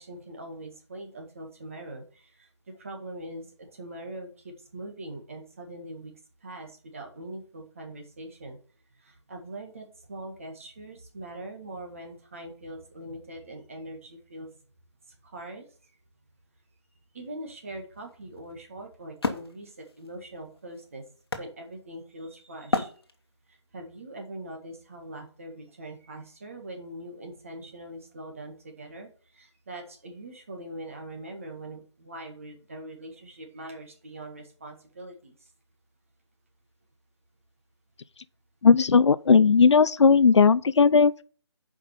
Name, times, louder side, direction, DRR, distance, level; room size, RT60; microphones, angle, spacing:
voice 1, 0.0-8.6 9.0-14.5 15.2-15.7 17.1-21.0 21.4-22.9 23.5-35.3, right 1 dB, 30° right, 1.7 m, -42 dB
Wood, 17.5-22.2 22.7-23.6, left 3 dB, 60° left, 1.3 m, -33 dB
voice 2, 38.6-41.2, left 5 dB, 80° left, 0.6 m, -17 dB
7.4 x 5.3 x 5.9 m
hypercardioid pair, 180°, 15 cm